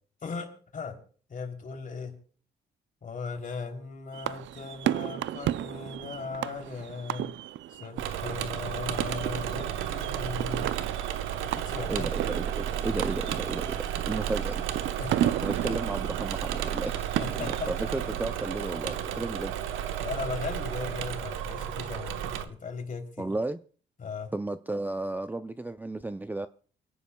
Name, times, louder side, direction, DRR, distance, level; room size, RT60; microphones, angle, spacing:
voice 1, 0.2-1.0 1.3-2.2 3.0-7.3 7.7-10.7 11.4-12.1 15.0-15.4 17.2-17.7 19.9-23.3 24.0-24.3, left 5 dB, 40° left, 3.2 m, -38 dB
sound 1, 4.1-17.6, right 12 dB, 70° right, 0.5 m, -34 dB
Engine / Mechanisms, 8.0-22.5, right 10 dB, 90° right, 1.1 m, -32 dB
voice 2, 11.9-14.7 15.4-19.5 23.2-23.6 24.3-26.5, right 2 dB, 10° right, 0.4 m, -34 dB
29.0 x 10.0 x 2.3 m
cardioid pair, 90°, 20 cm